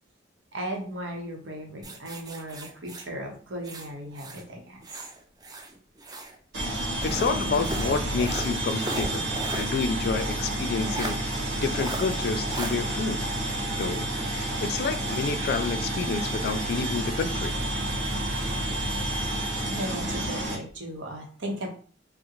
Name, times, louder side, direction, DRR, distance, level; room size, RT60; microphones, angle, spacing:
voice 1, 0.5-5.1 19.7-21.7, right 1 dB, 90° right, 2 dB, 0.8 m, -36 dB
sound 1, 1.8-4.5 4.8-6.4 7.0-9.7 10.1-10.2 10.9-11.2 11.7-12.0 12.5-12.7, right 2 dB, 20° right, 0.4 m, -37 dB
sound 2, 6.5-20.6, right 1 dB, 70° right, 1.3 m, -30 dB
voice 2, 7.0-9.3 9.5-11.2 11.6-13.2 13.8-17.5, left 4 dB, 60° left, 10 dB, 0.3 m, -29 dB
3.6 x 2.0 x 2.9 m, 0.43 s
head